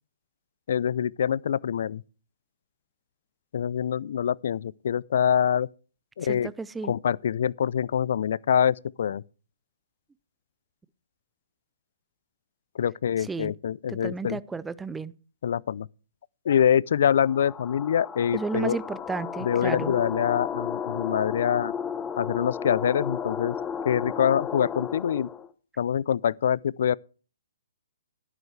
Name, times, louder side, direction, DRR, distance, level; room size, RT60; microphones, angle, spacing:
voice 1, 0.7-2.0 3.5-5.7 6.2-6.5 6.8-9.2 12.8-14.4 15.4-15.9 16.5-18.8 19.4-21.7 22.2-23.6 23.8-25.3 25.8-27.0, left 8 dB, 60° left, 0.4 m, -25 dB
voice 2, 6.2-6.9 13.2-13.5 13.9-15.1 18.3-20.0, right 4 dB, 10° right, 0.5 m, -33 dB
sound 1, 17.1-25.5, left 7 dB, 15° left, 1.0 m, -34 dB
14.0 x 11.0 x 3.3 m
hypercardioid pair, 135°, 0 cm